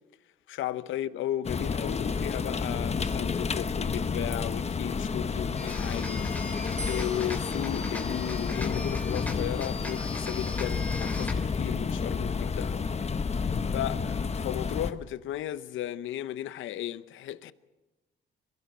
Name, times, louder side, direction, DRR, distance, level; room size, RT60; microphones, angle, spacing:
voice 1, 0.5-6.4 6.8-12.8 13.7-17.5, left 12 dB, 80° left, 0.8 m, -35 dB
sound 1, 1.4-14.9, left 5 dB, 35° left, 1.1 m, -30 dB
sound 2, 5.5-11.3, left 2 dB, 10° left, 3.2 m, -41 dB
sound 3, 6.8-9.0 9.8-10.3, right 1 dB, 15° right, 1.7 m, -46 dB
22.0 x 16.0 x 7.8 m
cardioid pair, 90°, 20 cm